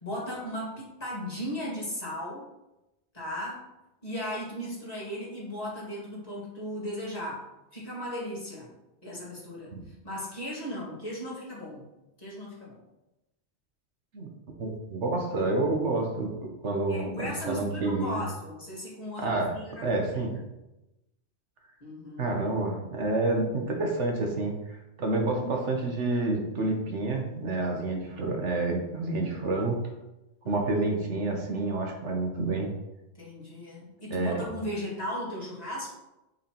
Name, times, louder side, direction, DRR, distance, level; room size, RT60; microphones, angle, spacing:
voice 1, 0.0-2.4 3.1-3.7 4.0-7.4 7.7-8.7 9.0-9.7 10.0-11.9 12.2-12.8 16.9-20.4 21.8-22.3 30.4-30.7 33.2-35.9, equal, 35° left, -6 dB, 2.1 m, -36 dB
voice 2, 14.6-18.2 19.2-19.5 19.8-20.3 22.2-29.8 30.5-32.7 34.1-34.4, right 2 dB, 70° right, 2 dB, 1.4 m, -29 dB
8.4 x 4.8 x 3.0 m, 0.96 s
omnidirectional pair, 1.2 m